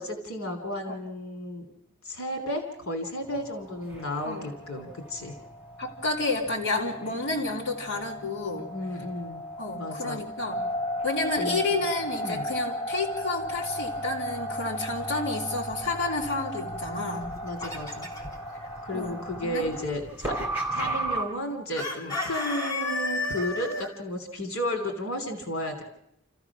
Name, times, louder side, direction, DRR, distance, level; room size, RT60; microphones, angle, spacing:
voice 1, 0.0-1.6 2.0-5.3 8.7-9.4 9.8-10.2 11.4-11.8 12.2-12.4 17.4-18.1 18.8-20.4 20.7-25.8, left 1 dB, 85° left, 5 dB, 3.1 m, -33 dB
sound 1, 3.2-21.2, equal, 10° right, 3.6 m, -35 dB
voice 2, 5.8-8.7 9.6-10.6 11.0-17.3 18.5-19.2 19.4-19.6, left 3 dB, 60° left, -3 dB, 3.2 m, -30 dB
Chicken rooster, 17.1-18.4 21.8-23.9, left 2 dB, 15° left, 3.5 m, -32 dB
29.0 x 15.0 x 6.1 m, 0.78 s
head